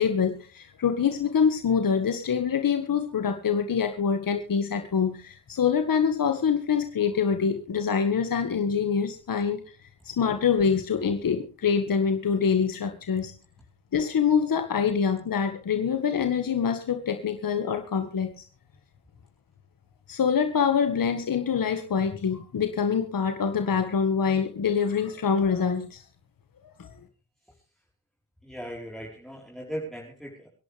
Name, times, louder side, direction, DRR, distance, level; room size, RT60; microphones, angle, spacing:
voice 1, 0.0-9.8 10.0-13.3 13.9-18.4 20.1-26.1 26.8-26.9, left 6 dB, 65° left, 7 dB, 1.8 m, -25 dB
voice 2, 28.4-30.5, equal, ahead, -1 dB, 4.4 m, -38 dB
25.5 x 11.0 x 3.5 m, 0.37 s
cardioid pair, 55°, 36 cm